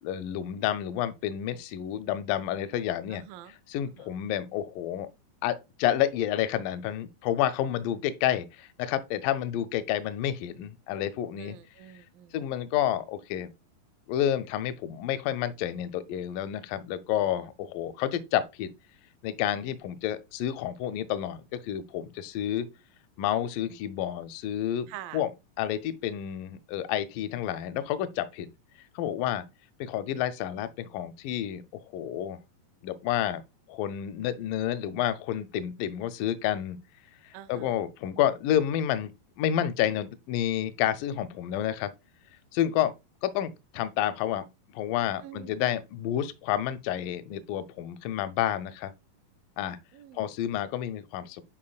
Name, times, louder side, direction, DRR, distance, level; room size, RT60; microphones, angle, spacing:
voice 1, 0.0-3.2 3.7-5.1 5.4-11.6 12.3-13.5 14.1-18.7 19.2-22.7 23.2-25.3 25.6-28.5 29.0-29.5 29.8-31.6 31.9-32.4 32.8-33.4 33.7-36.8 37.5-41.9 42.5-42.9 43.2-44.5 44.7-48.9 49.6-49.8 50.2-51.4, left 11 dB, 85° left, 1.9 m, -29 dB
voice 2, 3.1-3.6 3.9-4.1 11.4-12.4 17.2-17.3 24.9-25.2 37.3-37.8 45.2-45.8 49.9-50.3, right 13 dB, 80° right, 2.0 m, -46 dB
10.5 x 4.3 x 2.3 m
omnidirectional pair, 4.4 m